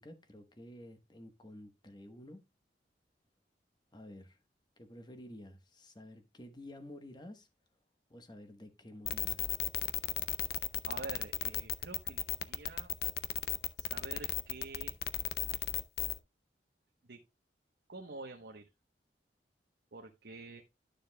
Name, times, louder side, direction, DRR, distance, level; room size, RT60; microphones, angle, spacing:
voice 1, 0.0-2.4 3.9-4.4 4.8-7.5 8.1-9.5, left 1 dB, 25° left, 1.1 m, -51 dB
sound 1, 9.1-16.2, left 12 dB, 60° left, 0.5 m, -34 dB
voice 2, 10.8-12.9 13.8-15.0 17.0-17.2 17.9-18.7 19.9-20.6, right 3 dB, 65° right, 1.0 m, -47 dB
11.5 x 6.8 x 2.2 m
head